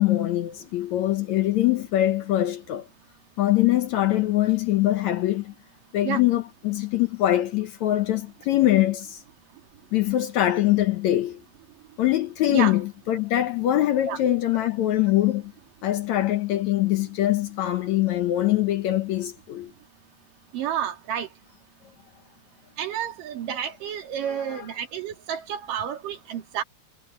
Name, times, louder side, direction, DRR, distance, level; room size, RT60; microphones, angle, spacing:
voice 1, 0.0-2.9 3.4-5.5 5.9-9.2 9.9-11.4 12.0-15.5 15.8-19.7 24.3-24.7, left 14 dB, 70° left, 1.9 m, -23 dB
voice 2, 20.5-21.3 22.8-26.6, right 9 dB, 75° right, 3.9 m, -30 dB
omnidirectional pair, 3.9 m